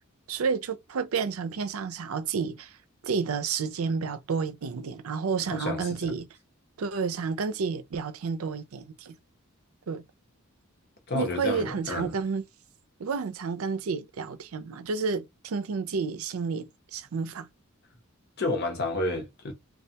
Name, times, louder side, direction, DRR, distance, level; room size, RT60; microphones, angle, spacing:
voice 1, 0.3-2.7 3.0-6.3 6.8-9.1 9.9-10.0 11.1-12.4 13.0-17.5, right 5 dB, 80° right, 0.5 m, -30 dB
voice 2, 5.5-6.1 11.1-12.1 18.4-19.5, left 2 dB, 50° left, 0.9 m, -30 dB
3.2 x 2.3 x 2.8 m
head